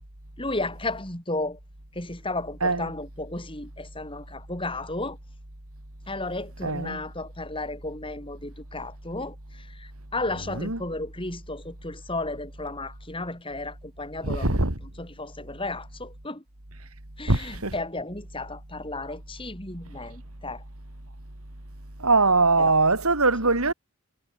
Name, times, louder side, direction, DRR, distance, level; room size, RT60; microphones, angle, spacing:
voice 1, 0.4-1.6 1.9-5.2 6.1-14.6 15.0-16.4 17.2-20.6 22.6-22.8, left 2 dB, 25° left, 7.7 m, -34 dB
voice 2, 6.6-7.0 10.6-10.8 14.2-14.8 17.3-17.7 22.0-23.7, right 3 dB, 85° right, 4.2 m, -22 dB
head